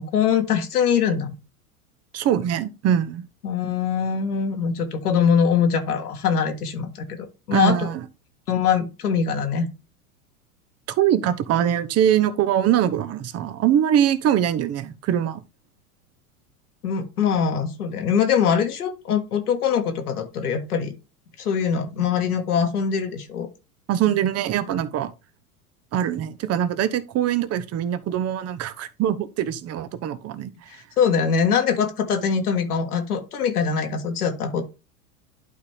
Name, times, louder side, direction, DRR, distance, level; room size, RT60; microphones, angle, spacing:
voice 1, 0.0-1.4 3.4-7.0 7.5-7.9 8.5-9.7 16.8-20.9 21.4-23.5 31.0-34.6, left 7 dB, 80° left, 1.9 m, -22 dB
voice 2, 2.1-3.2 7.5-8.0 11.0-15.4 23.9-25.1 25.9-30.5, right 10 dB, 35° right, 1.0 m, -22 dB
11.5 x 4.1 x 3.5 m
hypercardioid pair, 90°, 45 cm